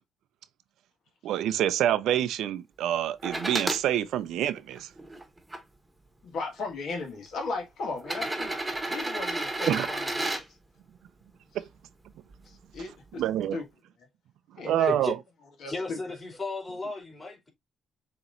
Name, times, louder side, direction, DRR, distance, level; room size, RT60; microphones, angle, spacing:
voice 1, 1.2-4.9 9.7-9.9 10.2-10.3 11.5-11.6 13.1-13.6 14.7-15.2, right 11 dB, 85° right, 0.4 m, -27 dB
sound 1, 3.2-3.8 4.6-5.6 6.6-6.7 8.0-10.4 12.3-12.4, right 2 dB, 15° right, 1.1 m, -32 dB
voice 2, 6.2-8.6 8.9-10.2 12.4-13.2 13.5-13.6 14.6-15.0 15.6-16.0, left 3 dB, 75° left, 1.5 m, -36 dB
voice 3, 15.7-17.5, left 3 dB, 25° left, 2.9 m, -34 dB
7.0 x 3.0 x 2.5 m
cardioid pair, 90°, 0 cm